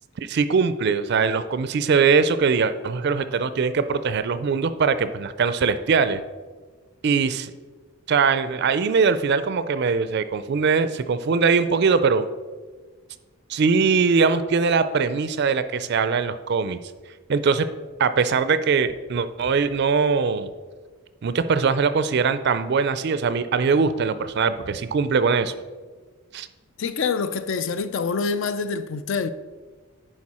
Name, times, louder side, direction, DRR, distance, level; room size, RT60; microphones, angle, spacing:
voice 1, 0.2-6.2 7.0-7.5 8.1-12.2 13.5-16.8 17.3-17.7 18.0-20.5 21.2-25.5 26.3-26.5, right 5 dB, 50° right, 0.4 m, -21 dB
voice 2, 26.8-29.3, left 5 dB, 60° left, 0.4 m, -26 dB
10.5 x 4.6 x 4.2 m
head